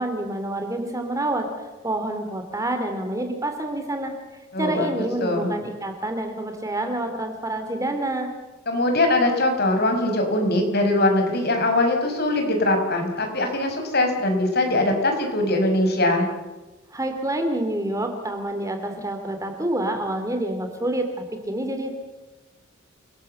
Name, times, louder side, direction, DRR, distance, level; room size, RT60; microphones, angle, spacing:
voice 1, 0.0-1.5 1.8-4.1 4.6-8.3 16.9-21.9, right 1 dB, 15° right, 5 dB, 2.7 m, -27 dB
voice 2, 4.5-5.5 8.7-16.3, left 1 dB, 50° left, 4 dB, 5.3 m, -22 dB
29.0 x 19.5 x 7.7 m, 1.1 s
head